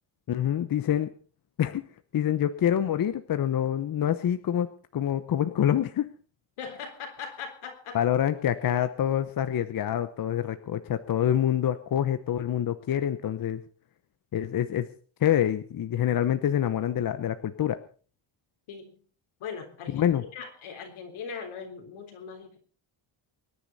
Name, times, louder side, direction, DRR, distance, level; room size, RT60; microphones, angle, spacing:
voice 1, 0.3-1.1 1.6-1.8 2.1-4.7 4.9-6.1 7.9-13.6 14.3-14.9 15.2-17.8 19.9-20.2, left 10 dB, 45° left, 10 dB, 0.9 m, -26 dB
voice 2, 6.6-8.0 18.7-19.0 19.4-22.6, left 6 dB, 80° left, 4 dB, 3.8 m, -40 dB
24.5 x 10.0 x 4.1 m, 0.40 s
cardioid pair, 130°, 48 cm